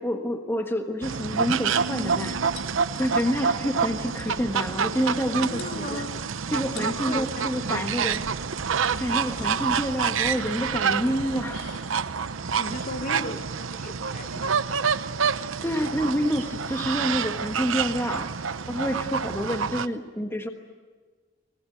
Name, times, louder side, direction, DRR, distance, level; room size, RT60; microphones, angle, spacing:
voice 1, 0.0-2.4 2.9-6.0 6.5-8.2 9.0-11.7 15.6-18.3 18.7-20.5, equal, 10° left, 5 dB, 1.4 m, -28 dB
sound 1, 1.0-19.9, right 6 dB, 80° right, 0.8 m, -28 dB
sound 2, 2.6-3.4 3.7-3.8 4.0-4.4 5.2-5.3 5.6-6.2 6.6-7.1 8.3-14.9, left 5 dB, 60° left, 4.0 m, -48 dB
voice 2, 5.4-6.2 6.7-7.8 12.6-14.8, left 1 dB, 40° left, 7 dB, 1.6 m, -37 dB
25.0 x 20.0 x 9.2 m, 1.4 s
head